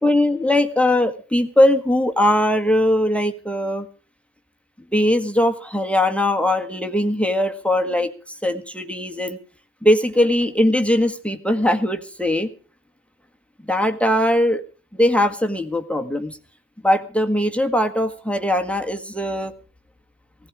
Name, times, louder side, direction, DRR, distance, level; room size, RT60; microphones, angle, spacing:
voice 1, 0.0-3.9 4.9-9.4 9.8-12.5 13.7-14.6 14.9-16.4 16.8-19.5, left 1 dB, 5° left, 8 dB, 1.6 m, -20 dB
16.0 x 15.0 x 4.8 m, 0.39 s
hypercardioid pair, 45°, 40 cm